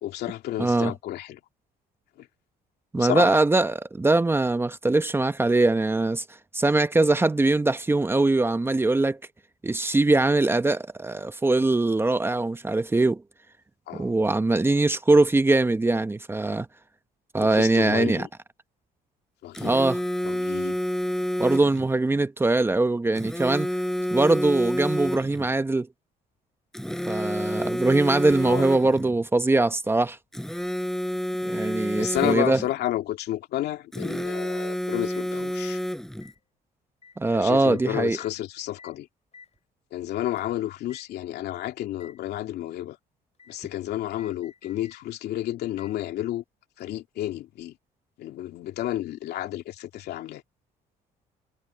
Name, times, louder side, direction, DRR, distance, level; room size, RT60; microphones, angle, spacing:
voice 1, 0.0-1.4 2.2-2.3 3.0-3.4 13.9-14.1 17.4-18.3 19.4-19.7 20.2-20.8 28.4-28.7 32.0-35.8 37.3-39.1 39.9-43.0 43.5-46.4 46.8-47.7 48.2-50.4, left 13 dB, 75° left, 2.7 m, -31 dB
voice 2, 0.6-0.9 2.9-6.2 6.5-9.2 9.6-13.2 13.9-16.7 17.3-18.3 19.6-20.0 21.4-23.7 24.1-25.9 27.1-30.2 31.4-32.6 37.2-38.2, right 2 dB, 15° right, 0.9 m, -22 dB
Telephone, 19.5-21.9 23.2-25.5 26.7-29.1 30.3-32.7 33.9-36.3, equal, ahead, 4.6 m, -29 dB
sound 1, 27.7-28.0 28.3-28.7 29.6-30.2 31.7-32.7 35.1-35.3 36.2-36.4 37.0-37.2 37.6-37.8 38.2-38.4 38.8-39.0 39.3-39.6 40.4-40.5 40.9-41.1 42.0-42.2 43.4-43.6 44.2-45.0 45.8-46.0 46.8-46.9, left 6 dB, 40° left, 7.8 m, -53 dB
cardioid pair, 110°, 17 cm